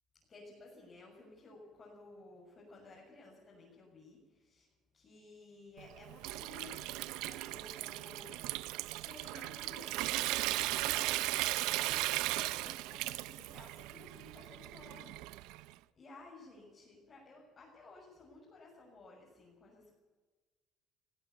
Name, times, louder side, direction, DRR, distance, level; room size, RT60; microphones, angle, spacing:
voice 1, 0.3-19.9, left 2 dB, 35° left, -4 dB, 7.3 m, -55 dB
Water tap faucet / Sink (filling or washing) / Trickle dribble, 5.8-15.7, right 18 dB, 85° right, 0.6 m, -37 dB
20.5 x 16.0 x 8.6 m, 1.3 s
supercardioid pair, 95°, 0 cm